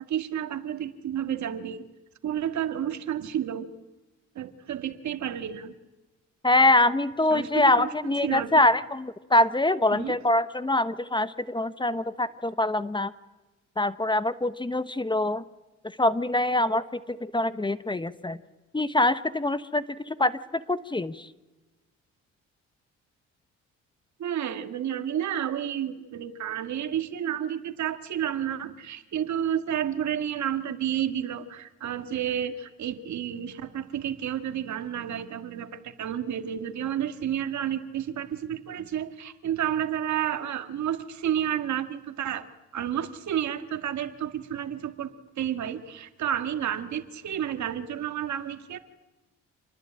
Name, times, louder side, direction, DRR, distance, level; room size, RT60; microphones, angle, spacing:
voice 1, 0.0-1.8 2.2-3.7 4.4-5.7 7.3-7.9 8.2-8.7 9.9-10.2 24.2-42.5 42.7-48.8, right 10 dB, 70° right, 9 dB, 1.9 m, -31 dB
voice 2, 6.4-13.1 13.8-15.4 16.0-18.4 18.7-21.3, left 2 dB, 15° left, 14 dB, 1.0 m, -24 dB
27.5 x 20.5 x 8.8 m, 1.1 s
cardioid pair, 90°, 30 cm